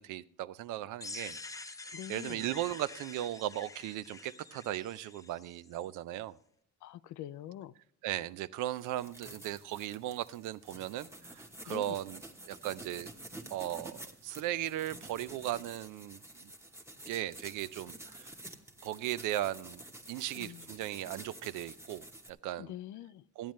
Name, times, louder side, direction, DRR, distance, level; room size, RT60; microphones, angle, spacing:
voice 1, 0.0-6.4 8.0-12.2 12.5-13.1 13.5-16.5 17.1-18.3 18.8-19.8 20.1-22.7 23.4-23.5, right 13 dB, 85° right, 0.5 m, -37 dB
sound 1, 1.0-5.9, left 3 dB, 10° left, 0.4 m, -47 dB
voice 2, 1.9-2.4 6.8-7.7 11.7-12.0 20.4-20.7 22.6-23.2, left 12 dB, 75° left, 0.5 m, -44 dB
sound 2, 8.7-22.3, right 1 dB, 10° right, 1.0 m, -50 dB
13.5 x 8.8 x 3.1 m
cardioid pair, 90°, 30 cm